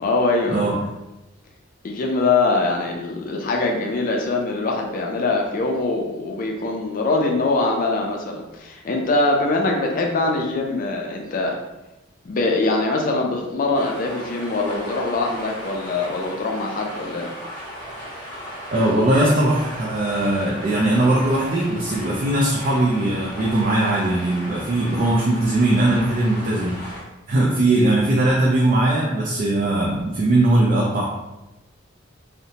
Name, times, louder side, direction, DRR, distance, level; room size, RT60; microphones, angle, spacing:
voice 1, 0.0-0.6 1.8-11.6 12.2-17.3, left 3 dB, 45° left, 1 dB, 0.3 m, -23 dB
sound 1, 13.7-27.0, equal, 5° left, 0.9 m, -36 dB
voice 2, 18.7-26.9 27.3-31.1, right 1 dB, 45° right, -4 dB, 0.4 m, -20 dB
2.7 x 2.1 x 2.7 m, 1.0 s
head